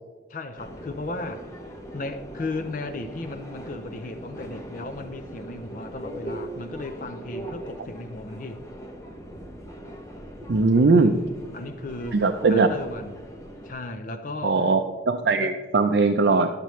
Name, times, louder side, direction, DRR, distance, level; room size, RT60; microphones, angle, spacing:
voice 1, 0.3-8.6 10.9-12.2 12.5-13.2 13.6-14.7 15.4-15.6, left 2 dB, 45° left, 8 dB, 0.6 m, -36 dB
Subway metro underground, 0.6-13.7, right 1 dB, 15° left, 0.9 m, -40 dB
voice 2, 10.5-11.1 12.1-12.7 14.4-16.5, right 3 dB, 65° right, 5 dB, 0.5 m, -20 dB
11.5 x 6.7 x 3.1 m, 1.3 s
head